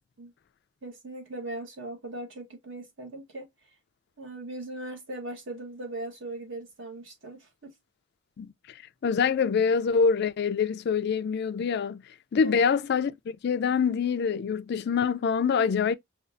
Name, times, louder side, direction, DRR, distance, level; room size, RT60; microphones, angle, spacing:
voice 1, 0.8-3.5 4.2-7.7 12.4-12.5, right 2 dB, 70° right, 1.5 m, -39 dB
voice 2, 9.0-12.0 12.3-15.9, left 6 dB, 55° left, 0.3 m, -25 dB
5.1 x 2.4 x 2.5 m
head